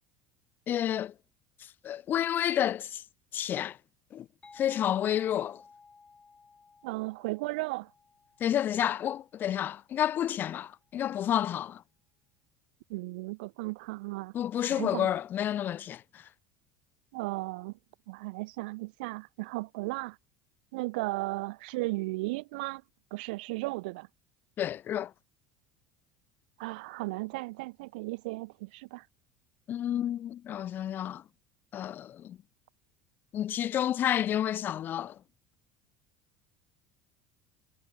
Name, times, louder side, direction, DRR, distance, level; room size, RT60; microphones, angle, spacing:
voice 1, 0.7-1.1 1.8-3.0 3.3-3.8 4.1-4.3 4.5-5.6 8.4-11.8 14.3-16.3 24.6-25.1 29.7-31.2 31.7-32.4 33.3-35.2, left 11 dB, 40° left, 0.8 m, -30 dB
sound 1, 4.4-9.9, left 4 dB, 20° left, 4.1 m, -56 dB
voice 2, 6.8-7.9 12.9-14.3 14.7-15.1 17.1-17.8 18.1-20.2 20.7-22.8 23.1-24.1 26.6-29.1, right 23 dB, 85° right, 0.4 m, -35 dB
supercardioid pair, 110°, 5 cm